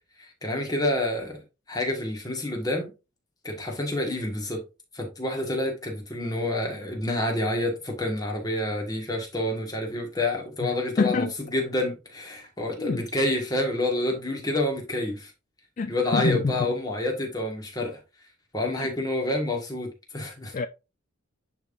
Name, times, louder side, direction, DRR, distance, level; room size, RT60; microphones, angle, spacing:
voice 1, 0.2-1.4 1.7-2.9 3.4-4.6 4.9-11.3 11.5-15.3 15.9-18.0 18.5-20.5, left 1 dB, 20° left, 1.6 m, -28 dB
voice 2, 11.0-11.3 12.8-13.1 15.8-16.7 18.8-18.9 20.5-20.7, left 4 dB, 40° left, 0.3 m, -26 dB
10.5 x 3.6 x 2.6 m
head